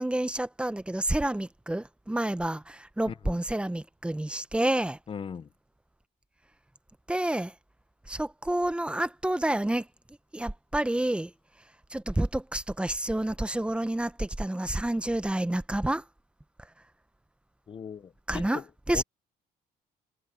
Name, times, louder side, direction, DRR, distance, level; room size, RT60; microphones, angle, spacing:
voice 1, 0.0-5.0 7.1-7.5 8.1-9.9 10.3-11.3 11.9-16.0 18.3-19.0, right 1 dB, 5° right, 0.9 m, -29 dB
voice 2, 3.1-3.4 5.1-5.5 17.7-18.6 18.9-19.0, left 7 dB, 30° left, 0.7 m, -39 dB
cardioid pair, 110°, 17 cm